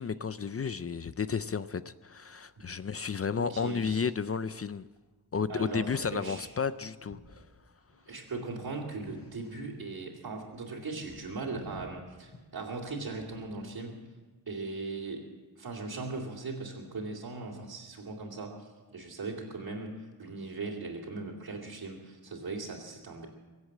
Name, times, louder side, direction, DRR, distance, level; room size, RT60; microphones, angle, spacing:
voice 1, 0.0-4.9 5.3-7.2, left 6 dB, 35° left, 0.4 m, -32 dB
voice 2, 3.4-4.1 5.5-6.5 8.1-14.0 14.5-15.3 15.6-23.3, right 3 dB, 60° right, 2.7 m, -39 dB
sound 1, 5.3-5.6 5.8-6.4 6.7-7.5 7.8-9.9 10.2-13.6, left 2 dB, 55° left, 4.7 m, -54 dB
23.5 x 8.1 x 7.4 m
wide cardioid pair, 130°, 40 cm